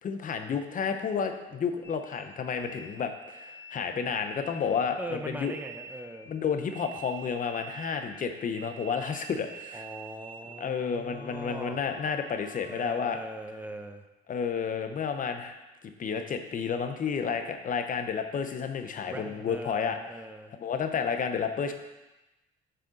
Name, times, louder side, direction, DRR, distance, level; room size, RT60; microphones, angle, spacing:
voice 1, 0.0-5.5 6.3-9.8 10.6-13.2 14.3-15.6 16.0-20.0 20.5-21.7, left 6 dB, 45° left, 6 dB, 0.6 m, -31 dB
sound 1, 1.8-10.7 11.0-12.9, right 4 dB, 25° right, 1.6 m, -48 dB
voice 2, 5.0-6.3 9.7-11.8 12.6-14.0 19.0-20.6, right 1 dB, 10° right, 6 dB, 0.5 m, -41 dB
6.7 x 3.7 x 3.8 m, 1.0 s
cardioid pair, 90°, 20 cm